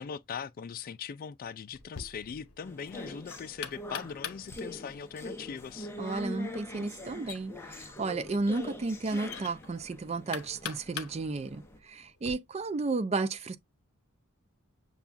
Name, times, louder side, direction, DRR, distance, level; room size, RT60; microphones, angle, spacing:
voice 1, 0.0-5.9, left 6 dB, 45° left, 0.3 m, -40 dB
Knock, 1.7-12.3, left 8 dB, 90° left, 0.7 m, -45 dB
sound 1, 2.6-11.8, left 1 dB, 10° left, 0.7 m, -43 dB
voice 2, 6.0-13.6, right 3 dB, 30° right, 0.4 m, -33 dB
7.0 x 2.4 x 2.5 m
head